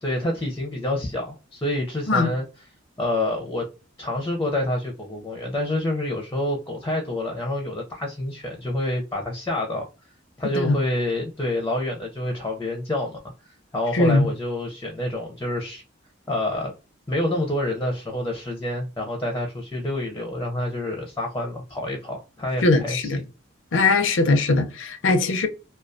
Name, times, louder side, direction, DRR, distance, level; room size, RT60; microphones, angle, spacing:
voice 1, 0.0-2.5 3.0-3.7 4.0-9.8 10.4-13.2 13.7-15.8 16.3-16.7 17.1-23.1, left 1 dB, 15° left, 0.5 m, -27 dB
voice 2, 13.9-14.3 22.6-23.2 23.7-25.5, left 3 dB, 75° left, 0.5 m, -20 dB
2.2 x 2.2 x 2.5 m
head